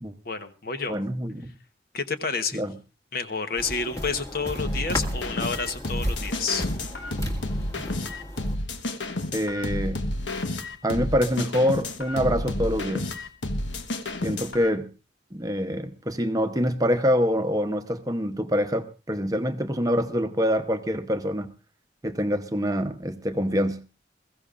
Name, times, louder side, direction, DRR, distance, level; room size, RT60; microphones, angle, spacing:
voice 1, 0.2-0.9 1.9-2.6 3.1-6.7, left 4 dB, 55° left, 1.1 m, -29 dB
voice 2, 0.9-1.5 2.5-2.8 9.3-10.0 10.8-13.1 14.2-14.9 15.3-21.5 22.0-23.8, equal, 20° right, 0.8 m, -25 dB
sound 1, 3.6-8.6, equal, 20° left, 1.8 m, -35 dB
sound 2, 4.6-14.7, left 1 dB, 80° left, 1.3 m, -30 dB
21.5 x 15.0 x 2.5 m
head